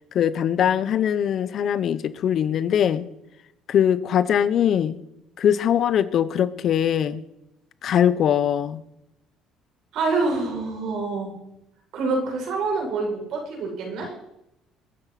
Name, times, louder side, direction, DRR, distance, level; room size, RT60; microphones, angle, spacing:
voice 1, 0.1-3.0 3.7-5.0 5.4-7.2 7.8-8.8, left 9 dB, 55° left, 15 dB, 1.0 m, -21 dB
voice 2, 9.9-11.3 11.9-14.1, right 3 dB, 70° right, 0 dB, 7.4 m, -26 dB
21.5 x 9.9 x 6.0 m, 0.86 s
supercardioid pair, 85°, 0 cm